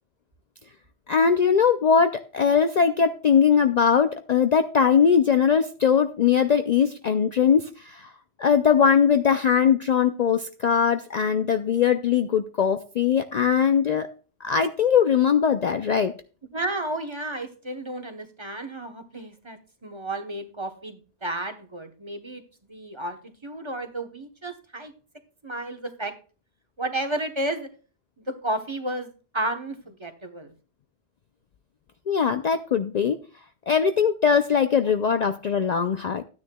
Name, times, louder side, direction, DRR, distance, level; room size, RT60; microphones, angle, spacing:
voice 1, 1.1-8.1 8.4-14.1 14.4-16.1 32.1-33.2 33.7-36.2, left 7 dB, 55° left, 8 dB, 0.5 m, -21 dB
voice 2, 16.5-22.4 22.7-24.9 25.4-26.1 26.8-27.7 28.2-30.5, right 1 dB, 30° right, 6 dB, 1.0 m, -32 dB
13.5 x 9.6 x 2.2 m, 0.36 s
omnidirectional pair, 1.1 m